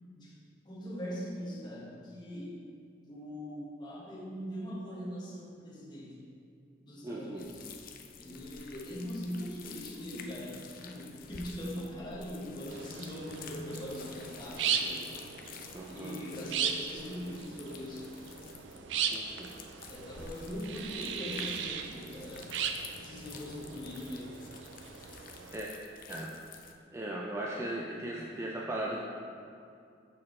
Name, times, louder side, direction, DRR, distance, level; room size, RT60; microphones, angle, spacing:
voice 1, 0.6-2.6 3.1-6.1 6.8-7.6 8.2-15.1 15.9-18.1 19.9-22.5 23.0-24.3, equal, 25° left, -5 dB, 1.0 m, -41 dB
voice 2, 7.0-7.5 15.7-16.2 19.1-19.5 25.5-25.7 26.1-26.3 26.9-29.0, right 1 dB, 15° right, -3 dB, 0.4 m, -37 dB
sound 1, 7.4-26.7, left 6 dB, 50° left, 0.4 m, -51 dB
sound 2, 12.7-25.6, right 7 dB, 85° right, 0.4 m, -38 dB
6.6 x 4.2 x 3.7 m, 2.5 s
head